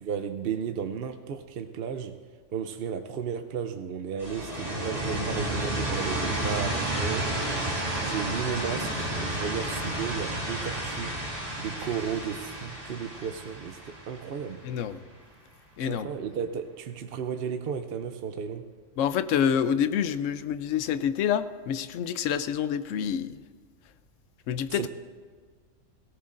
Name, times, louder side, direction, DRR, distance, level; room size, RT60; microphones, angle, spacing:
voice 1, 0.0-2.2 2.5-7.4 8.0-11.2 11.6-14.7 15.9-18.7 24.7-24.9, right 7 dB, 55° right, 8 dB, 0.8 m, -34 dB
sound 1, 4.2-14.9, right 1 dB, 30° right, 3.6 m, -31 dB
voice 2, 14.6-15.0 15.8-16.1 19.0-23.4 24.5-24.9, left 8 dB, 80° left, 12 dB, 1.0 m, -27 dB
18.5 x 18.0 x 2.6 m, 1.5 s
omnidirectional pair, 1.3 m